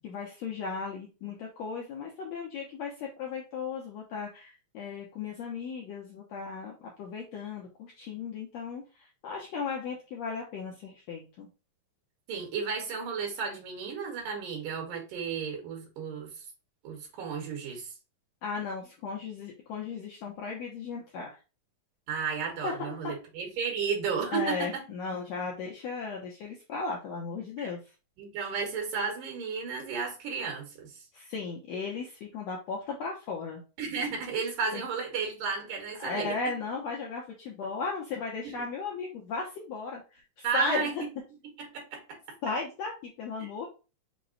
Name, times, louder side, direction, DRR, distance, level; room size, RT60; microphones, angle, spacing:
voice 1, 0.0-11.5 18.4-21.4 22.6-23.1 24.3-27.8 31.1-33.6 34.7-34.8 36.0-41.0 42.4-43.7, left 4 dB, 75° left, 1.6 m, -36 dB
voice 2, 12.3-16.4 16.8-17.9 22.1-24.8 27.6-27.7 28.2-31.0 33.8-36.3 38.4-38.5 40.4-40.9 41.6-42.2 43.4-43.5, right 5 dB, 70° right, 2.8 m, -33 dB
5.8 x 2.1 x 3.8 m
omnidirectional pair, 3.9 m